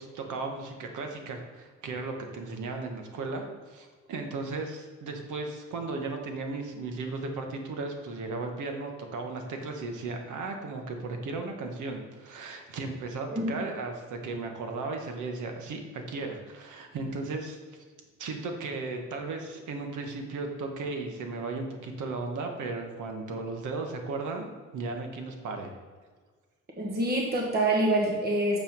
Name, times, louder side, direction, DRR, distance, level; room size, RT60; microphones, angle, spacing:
voice 1, 0.0-17.6 18.2-25.8, right 3 dB, 80° right, 4 dB, 1.4 m, -36 dB
voice 2, 26.8-28.6, right 1 dB, 30° right, -1 dB, 1.5 m, -26 dB
6.8 x 5.8 x 5.3 m, 1.5 s
cardioid pair, 90°, 30 cm